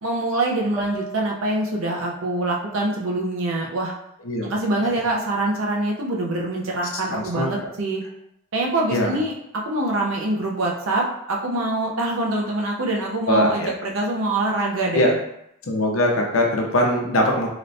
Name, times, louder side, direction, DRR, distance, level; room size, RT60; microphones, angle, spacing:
voice 1, 0.0-3.9 4.4-8.0 8.5-15.2, right 2 dB, 85° right, -1 dB, 0.7 m, -24 dB
sound 1, 0.8-4.2 4.6-5.6, equal, 5° right, 0.5 m, -41 dB
voice 2, 7.1-7.5 8.9-9.1 13.3-13.7 14.9-15.1 15.6-17.5, left 1 dB, 85° left, 0 dB, 0.7 m, -21 dB
3.0 x 2.6 x 3.2 m, 0.77 s
head